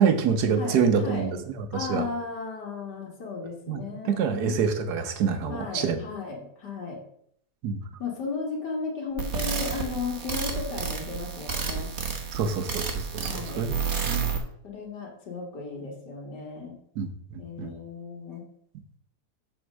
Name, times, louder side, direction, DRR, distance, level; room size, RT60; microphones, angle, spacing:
voice 1, 0.0-2.1 3.7-6.0 7.6-7.8 12.3-13.7 14.0-14.3 17.0-17.7, right 6 dB, 75° right, 8 dB, 1.5 m, -26 dB
voice 2, 0.5-1.3 1.7-4.6 5.5-7.0 8.0-11.9 13.2-13.7 14.6-16.8 17.4-18.4, left 4 dB, 80° left, -1 dB, 2.2 m, -35 dB
sound 1, 9.2-14.4, right 6 dB, 45° right, 1.3 m, -31 dB
7.9 x 4.4 x 6.3 m, 0.68 s
omnidirectional pair, 1.8 m